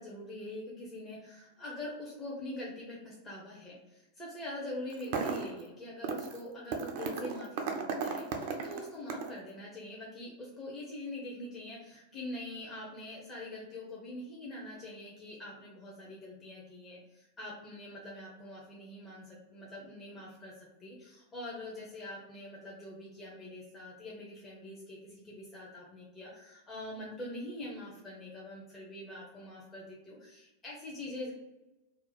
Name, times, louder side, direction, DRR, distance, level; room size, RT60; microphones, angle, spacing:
voice 1, 0.0-31.3, left 1 dB, 20° left, -5 dB, 0.8 m, -44 dB
sound 1, 4.9-5.6 6.0-6.4 6.7-9.4, right 5 dB, 50° right, 0.4 m, -35 dB
2.7 x 2.2 x 4.0 m, 1.0 s
figure-of-eight pair, 90°, 0 cm